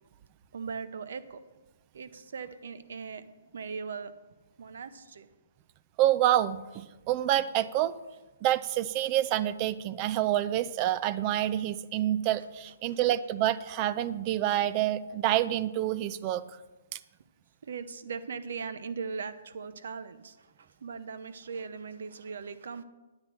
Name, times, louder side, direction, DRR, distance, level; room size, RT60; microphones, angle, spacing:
voice 1, 0.5-1.4 1.9-3.3 3.5-4.1 4.6-5.3 12.9-13.0 17.6-22.8, right 5 dB, 65° right, 13 dB, 0.8 m, -39 dB
voice 2, 6.0-8.0 8.4-16.4, right 13 dB, 30° right, 17 dB, 0.4 m, -27 dB
9.6 x 9.5 x 4.4 m, 1.2 s
hypercardioid pair, 140°, 0 cm